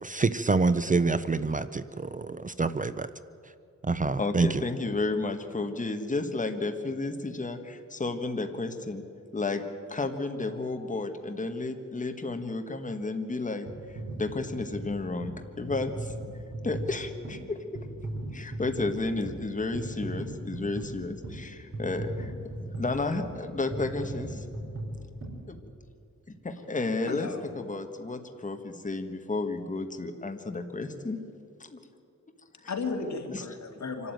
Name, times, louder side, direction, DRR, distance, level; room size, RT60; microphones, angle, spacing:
voice 1, 0.0-3.1 3.8-4.6, right 4 dB, 25° right, 13 dB, 0.6 m, -26 dB
voice 2, 4.2-9.0 9.3-9.6 9.9-16.1 16.6-17.9 18.3-24.4 25.5-25.6 26.4-31.2 31.6-31.8 32.6-32.7 33.3-33.5, left 3 dB, 25° left, 6 dB, 1.4 m, -32 dB
sound 1, 13.7-26.1 26.6-26.8, right 1 dB, 50° right, 4.1 m, -39 dB
voice 3, 27.1-27.5 32.6-34.1, left 4 dB, 65° left, 3 dB, 2.6 m, -34 dB
25.0 x 12.5 x 9.1 m, 2.6 s
wide cardioid pair, 120°, 29 cm